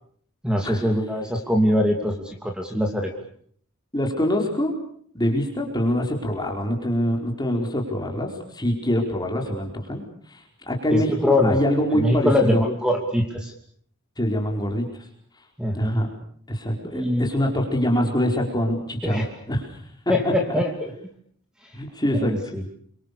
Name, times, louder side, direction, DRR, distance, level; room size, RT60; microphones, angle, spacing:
voice 1, 0.4-3.1 10.9-11.6 11.9-13.5 15.6-16.0 16.9-17.3 19.0-19.3 20.1-20.9 22.1-22.6, left 1 dB, 5° right, 3 dB, 2.9 m, -23 dB
voice 2, 3.9-4.7 5.1-12.6 14.2-15.1 15.7-16.1 16.5-19.8 20.2-20.6 21.7-22.4, equal, 20° left, 1 dB, 4.8 m, -25 dB
29.5 x 24.5 x 6.9 m, 0.62 s
head